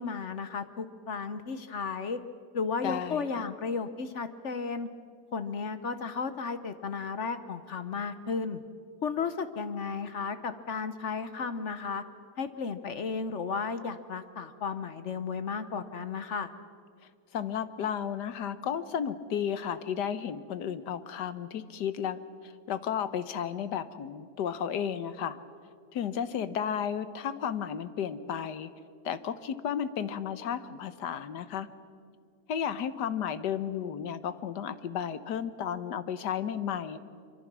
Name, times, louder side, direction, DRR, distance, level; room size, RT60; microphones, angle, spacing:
voice 1, 0.0-2.2 2.5-4.9 5.3-8.6 9.0-12.0 12.4-16.5, left 5 dB, 50° left, 11 dB, 1.1 m, -34 dB
voice 2, 2.8-3.4 17.3-25.4 25.9-28.7 29.0-31.7 32.5-37.0, left 8 dB, 85° left, 13 dB, 1.5 m, -33 dB
25.0 x 24.5 x 6.1 m, 2.3 s
omnidirectional pair, 1.8 m